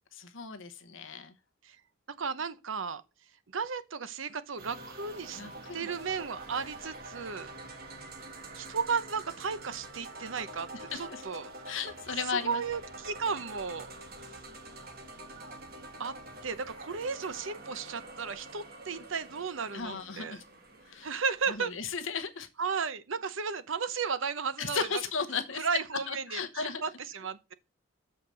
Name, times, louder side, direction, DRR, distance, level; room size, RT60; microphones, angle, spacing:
voice 1, 0.1-1.3 5.4-5.9 10.7-11.2 11.6-12.6 19.7-20.4 20.9-21.1 21.5-22.5 24.6-25.7 26.1-26.8, left 5 dB, 70° left, 1.0 m, -35 dB
voice 2, 2.2-3.0 3.5-5.4 5.7-7.5 8.6-11.5 12.3-13.9 16.0-16.1 16.4-20.4 21.0-21.7 22.6-24.9 25.6-27.5, right 5 dB, 75° right, 0.8 m, -34 dB
sound 1, 4.6-21.8, right 2 dB, 50° right, 1.4 m, -46 dB
6.7 x 4.8 x 6.2 m
head